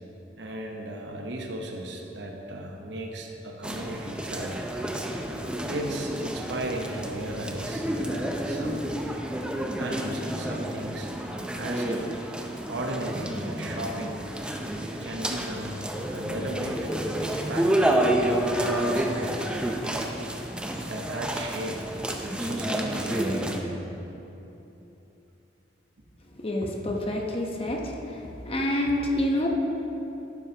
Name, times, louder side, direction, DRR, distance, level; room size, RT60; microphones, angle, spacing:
voice 1, 0.4-4.6 5.7-8.9 9.8-11.1 11.6-12.1 12.7-14.2 15.0-16.9 17.2-18.1 18.6-19.5 20.9-21.9 22.2-23.9, right 1 dB, 75° right, 2 dB, 1.0 m, -35 dB
sound 1, 3.6-23.6, right 1 dB, 5° right, 0.6 m, -30 dB
voice 2, 26.4-28.2 28.4-29.5, left 1 dB, 35° left, 0 dB, 0.9 m, -27 dB
12.0 x 9.6 x 2.9 m, 3.0 s
head